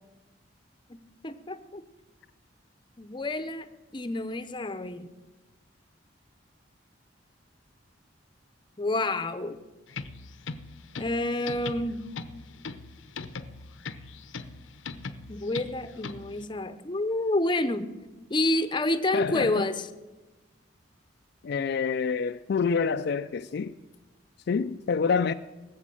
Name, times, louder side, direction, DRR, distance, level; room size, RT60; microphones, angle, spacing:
voice 1, 0.9-1.8 3.0-5.1 8.8-9.6 11.0-12.0 15.3-17.9 18.3-19.9, left 2 dB, 25° left, 0.7 m, -29 dB
sound 1, 9.9-16.4, left 4 dB, 80° left, 0.7 m, -40 dB
voice 2, 19.1-19.7 21.4-23.7 24.5-25.3, left 5 dB, 55° left, 0.4 m, -27 dB
18.5 x 7.3 x 7.6 m
head